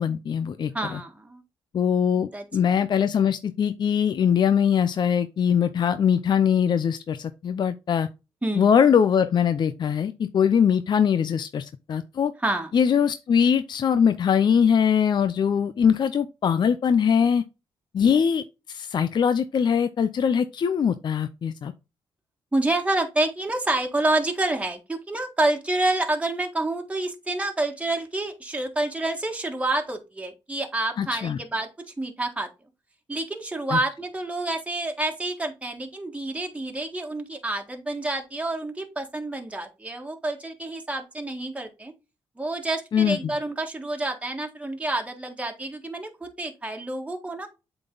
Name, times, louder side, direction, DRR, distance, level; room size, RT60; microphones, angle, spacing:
voice 1, 0.0-0.7 1.7-8.1 8.6-12.3 12.7-17.4 17.9-18.4 18.7-21.7 31.0-31.4 33.7-33.8 42.9-43.2, left 7 dB, 55° left, 0.5 m, -22 dB
voice 2, 0.7-1.4 2.1-2.4 8.4-8.7 12.4-12.7 22.5-31.7 32.0-32.5 33.1-41.9 42.4-47.5, right 2 dB, 15° right, 1.7 m, -28 dB
7.8 x 3.9 x 3.9 m
cardioid pair, 70°, 9 cm